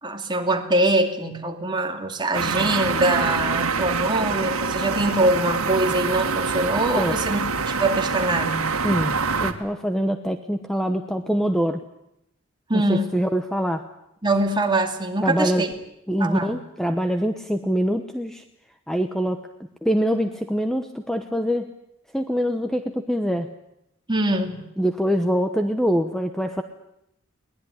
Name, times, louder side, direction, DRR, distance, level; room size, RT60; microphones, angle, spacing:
voice 1, 0.0-7.4 7.7-8.8 12.7-13.2 14.2-15.7 16.2-16.6 24.1-24.7, right 1 dB, 20° right, 4 dB, 2.4 m, -23 dB
sound 1, 2.3-9.5, right 4 dB, 85° right, 1.9 m, -25 dB
voice 2, 8.8-9.2 9.4-11.8 12.7-13.8 15.2-15.6 16.1-18.4 18.9-19.4 19.8-21.7 22.1-23.5 24.8-26.6, equal, ahead, 7 dB, 1.0 m, -24 dB
22.5 x 19.5 x 9.9 m, 0.82 s
head